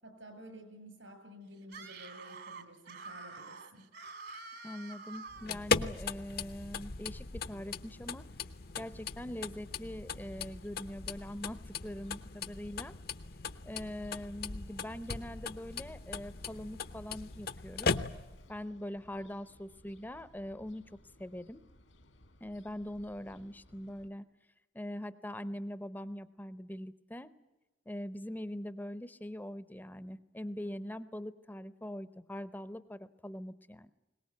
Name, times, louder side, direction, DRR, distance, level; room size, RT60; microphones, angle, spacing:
voice 1, 0.0-3.8, equal, 75° right, 7 dB, 6.9 m, -52 dB
Screaming, 1.6-5.6, right 4 dB, 60° right, 1.9 m, -47 dB
voice 2, 4.6-8.2 8.8-12.9 13.6-18.0 18.5-21.6 22.4-24.2 24.7-27.3 27.9-33.9, left 1 dB, 10° left, 14 dB, 0.7 m, -42 dB
sound 1, 5.3-18.5, left 4 dB, 50° left, 0.8 m, -38 dB
sound 2, 7.0-24.1, left 1 dB, 80° left, 2.1 m, -62 dB
22.0 x 19.5 x 9.4 m, 1.0 s
head